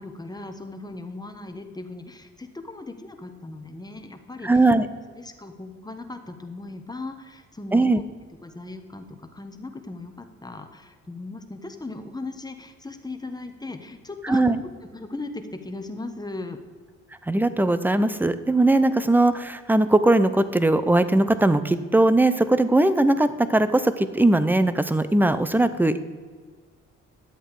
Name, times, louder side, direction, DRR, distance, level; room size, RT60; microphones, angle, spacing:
voice 1, 0.0-4.6 5.1-8.0 8.4-16.6, left 2 dB, 15° left, 6 dB, 1.2 m, -38 dB
voice 2, 4.4-4.9 7.7-8.0 14.2-14.6 17.3-26.0, right 2 dB, 5° right, 13 dB, 0.6 m, -20 dB
11.0 x 7.9 x 4.8 m, 1.5 s
cardioid pair, 90°, 30 cm